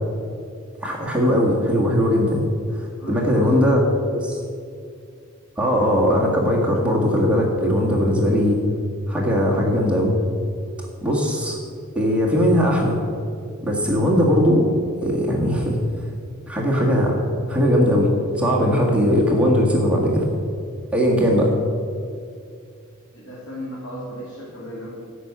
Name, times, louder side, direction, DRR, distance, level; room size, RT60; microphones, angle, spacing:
voice 1, 0.8-2.4 2.7-3.8 4.1-4.4 5.6-8.6 9.1-10.1 11.0-11.6 11.9-13.0 13.6-14.6 15.0-15.8 16.5-17.2 17.5-18.1 18.4-20.3 20.9-21.5, equal, 5° right, -3 dB, 1.6 m, -19 dB
voice 2, 3.0-3.8 23.1-24.9, equal, 75° left, -6 dB, 2.5 m, -34 dB
10.5 x 6.2 x 8.5 m, 2.3 s
head